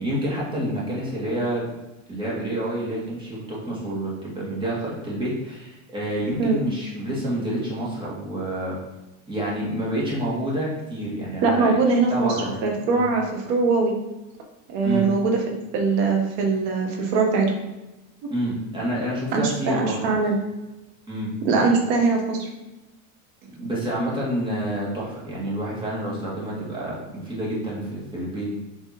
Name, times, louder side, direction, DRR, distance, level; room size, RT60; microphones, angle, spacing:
voice 1, 0.0-1.6 2.1-8.8 9.3-11.8 12.1-12.5 12.9-13.1 14.8-15.1 18.3-20.2 21.1-21.3 23.6-28.5, right 1 dB, 10° right, -6 dB, 2.1 m, -28 dB
voice 2, 11.4-12.4 12.6-14.0 14.7-17.5 19.3-20.4 21.4-22.5, right 4 dB, 65° right, 2 dB, 1.7 m, -22 dB
7.1 x 3.5 x 4.3 m, 1.0 s
supercardioid pair, 140°, 40 cm